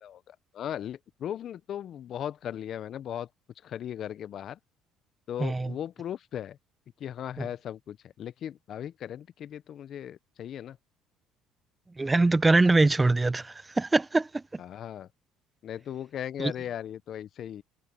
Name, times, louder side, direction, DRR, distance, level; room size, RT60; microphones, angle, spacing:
voice 1, 0.0-3.3 3.6-4.6 5.3-6.6 7.0-10.8 14.6-15.1 15.6-17.6, left 10 dB, 55° left, 0.8 m, -37 dB
voice 2, 5.4-5.7 12.0-14.4 16.4-16.5, right 2 dB, 20° right, 0.9 m, -23 dB
hypercardioid pair, 70°, 0 cm